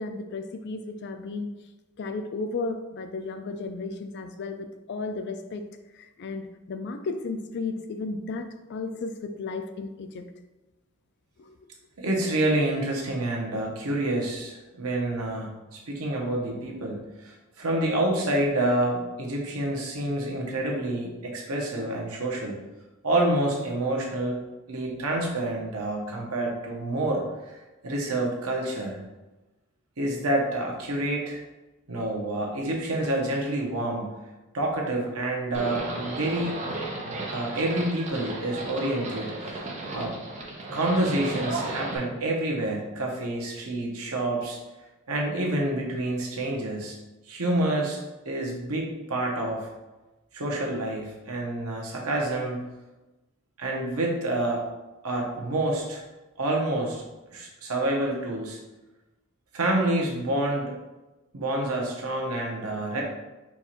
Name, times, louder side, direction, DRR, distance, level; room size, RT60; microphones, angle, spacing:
voice 1, 0.0-1.5 2.0-5.6 5.9-10.3 11.4-11.5, left 3 dB, 50° left, 8 dB, 0.4 m, -34 dB
voice 2, 12.0-22.6 23.0-24.4 24.7-27.6 27.8-29.0 30.0-31.4 31.9-34.2 34.5-36.5 37.3-39.6 39.9-40.2 40.7-44.6 45.1-47.0 47.3-48.0 48.2-49.7 50.3-52.6 53.6-54.6 55.0-56.0 56.4-57.0 57.3-58.6 59.5-60.7 61.3-63.0, right 1 dB, 85° right, -1 dB, 1.0 m, -28 dB
Livestock farm animals working animals, 35.5-42.0, right 2 dB, 35° right, 0.8 m, -34 dB
4.6 x 2.5 x 4.3 m, 1.1 s
head